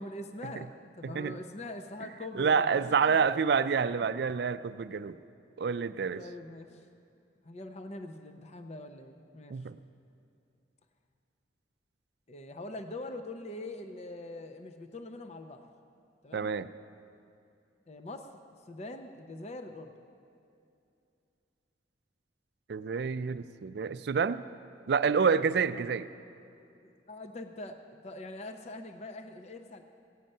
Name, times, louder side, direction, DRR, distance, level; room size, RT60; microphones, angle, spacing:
voice 1, 0.0-3.2 6.2-6.8 7.4-9.6 12.3-15.7 16.2-16.5 17.9-18.3 18.7-19.9 25.7-25.8 27.1-29.8, left 2 dB, 35° left, 6 dB, 0.6 m, -43 dB
voice 2, 1.0-1.4 2.3-5.2 5.6-6.3 9.5-9.8 16.3-16.7 22.7-24.4 24.9-26.1, right 6 dB, 60° right, 14 dB, 0.4 m, -28 dB
16.0 x 8.9 x 5.4 m, 2.6 s
head